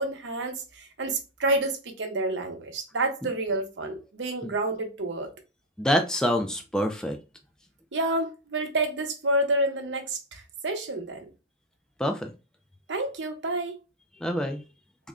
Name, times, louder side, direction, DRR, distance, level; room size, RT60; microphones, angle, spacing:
voice 1, 0.0-5.3 7.9-11.3 12.9-13.8, right 2 dB, 90° right, 0.8 m, -29 dB
voice 2, 5.8-7.2 12.0-12.3 14.2-14.6, equal, 5° left, 0.3 m, -26 dB
3.5 x 2.1 x 3.6 m
head